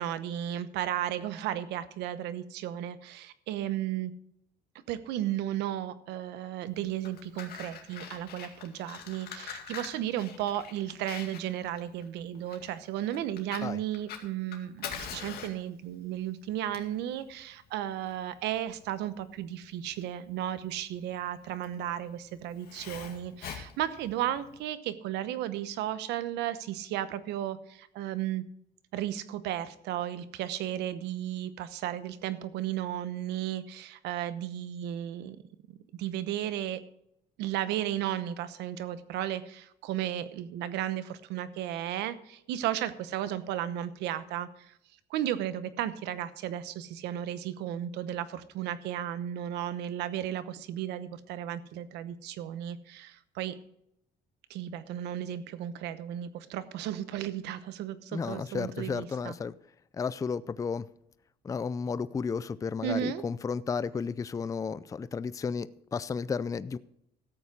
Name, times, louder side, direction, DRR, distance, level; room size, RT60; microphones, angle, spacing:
voice 1, 0.0-4.1 4.9-28.4 28.9-35.4 35.7-36.8 37.4-44.7 45.1-53.6 54.5-59.3 62.8-63.2, right 11 dB, 85° right, 14 dB, 0.9 m, -34 dB
Fire, 6.8-24.6, left 8 dB, 65° left, 2.2 m, -45 dB
voice 2, 58.1-59.5 59.9-60.9 61.4-66.8, left 5 dB, 20° left, 16 dB, 0.4 m, -33 dB
13.5 x 8.4 x 4.8 m, 0.76 s
cardioid pair, 110°, 17 cm